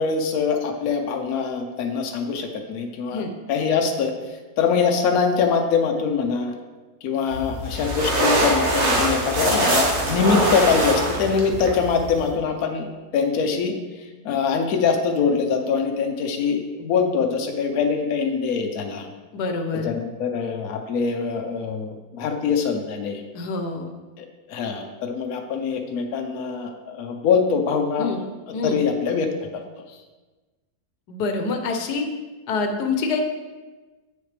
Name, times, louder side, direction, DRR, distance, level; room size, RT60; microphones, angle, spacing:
voice 1, 0.0-4.1 4.6-6.6 7.0-13.7 14.2-19.1 19.7-23.2 24.2-28.1 28.5-29.3, left 5 dB, 70° left, 3 dB, 1.2 m, -23 dB
sound 1, 7.3-12.3, right 1 dB, 45° right, 1.5 m, -23 dB
voice 2, 19.3-19.9 23.3-23.9 28.0-28.2 28.5-28.8 31.1-32.0 32.5-33.2, left 4 dB, 90° left, 5 dB, 1.3 m, -26 dB
7.9 x 6.5 x 3.3 m, 1.2 s
omnidirectional pair, 1.7 m